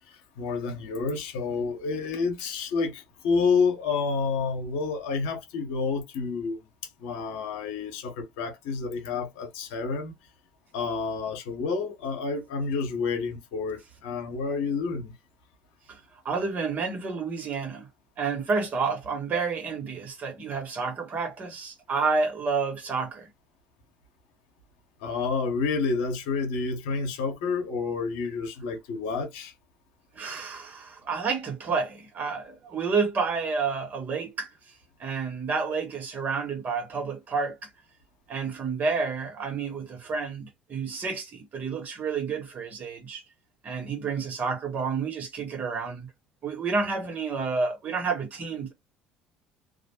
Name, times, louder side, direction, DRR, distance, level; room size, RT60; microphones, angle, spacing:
voice 1, 0.4-6.6 7.0-10.1 10.7-15.1 25.0-29.5, left 4 dB, 75° left, 0.9 m, -29 dB
voice 2, 16.2-17.9 18.2-23.3 30.2-34.5 35.0-37.6 38.3-43.2 43.6-46.1 46.4-48.7, right 4 dB, 40° right, 1.1 m, -30 dB
2.4 x 2.0 x 2.9 m
hypercardioid pair, 65°, 4 cm